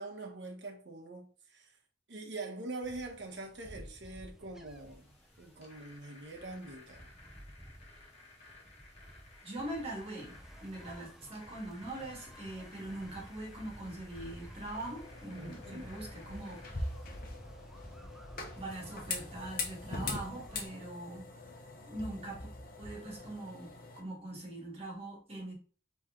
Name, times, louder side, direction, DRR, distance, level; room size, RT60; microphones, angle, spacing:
voice 1, 0.0-1.8 2.1-7.1 15.3-15.9, right 2 dB, 70° right, 1.1 m, -44 dB
sound 1, 2.8-20.6, equal, 5° right, 0.5 m, -53 dB
sound 2, 4.7-17.2, left 2 dB, 35° left, 1.4 m, -58 dB
voice 2, 9.4-16.9 18.6-21.3 21.9-22.5 22.8-25.5, right 1 dB, 35° right, 2.0 m, -42 dB
sound 3, 14.7-24.0, left 3 dB, 50° left, 0.9 m, -42 dB
4.4 x 3.2 x 3.7 m
head